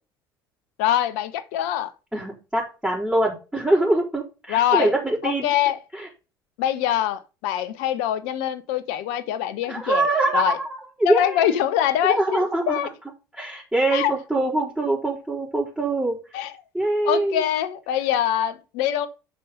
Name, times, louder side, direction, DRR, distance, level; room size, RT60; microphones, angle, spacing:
voice 1, 0.8-1.9 4.5-4.9 5.2-5.8 6.6-10.1 10.3-10.6 11.0-12.9 13.9-14.1 16.3-16.5 17.0-19.1, left 11 dB, 65° left, 1.1 m, -24 dB
voice 2, 2.1-5.5 5.9-6.1 9.7-10.5 11.0-11.5 12.0-12.8 13.3-16.2 16.7-17.4, right 2 dB, 5° right, 4.7 m, -23 dB
7.5 x 5.9 x 5.5 m
figure-of-eight pair, 60°, 11 cm